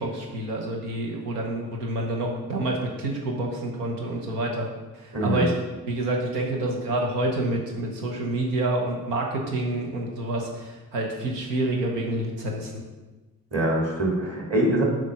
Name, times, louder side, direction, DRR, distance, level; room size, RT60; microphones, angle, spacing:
voice 1, 0.0-4.7 4.9-5.5 5.9-12.8, right 1 dB, 80° right, 0 dB, 1.0 m, -28 dB
voice 2, 5.1-5.5 13.5-14.8, right 1 dB, 30° right, -1 dB, 2.3 m, -24 dB
7.5 x 4.9 x 3.7 m, 1.2 s
figure-of-eight pair, 40°, 47 cm